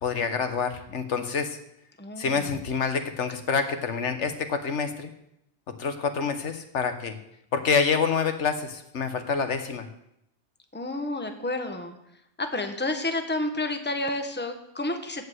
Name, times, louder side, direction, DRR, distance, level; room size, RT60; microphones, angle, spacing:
voice 1, 0.0-1.6 2.2-5.1 5.8-7.2 7.5-9.8, left 5 dB, 85° left, 8 dB, 1.4 m, -27 dB
voice 2, 2.0-2.5 10.7-12.0 12.4-15.3, left 2 dB, 10° left, 6 dB, 1.0 m, -30 dB
15.5 x 5.3 x 7.9 m, 0.80 s
omnidirectional pair, 1.2 m